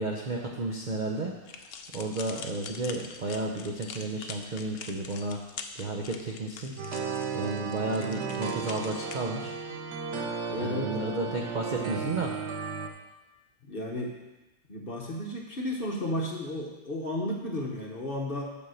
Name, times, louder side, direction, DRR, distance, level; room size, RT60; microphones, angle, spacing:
voice 1, 0.0-1.6 1.9-5.4 5.8-6.7 7.3-9.5 10.5-12.4, right 2 dB, 55° right, 0 dB, 0.5 m, -32 dB
sound 1, 1.4-9.1, left 5 dB, 75° left, 0.5 m, -44 dB
sound 2, 6.8-12.9, right 5 dB, 70° right, 1.4 m, -34 dB
voice 2, 10.5-11.0 13.7-14.1 14.7-18.6, left 1 dB, 40° left, -1 dB, 1.0 m, -33 dB
7.0 x 5.4 x 6.4 m, 1.1 s
omnidirectional pair, 1.8 m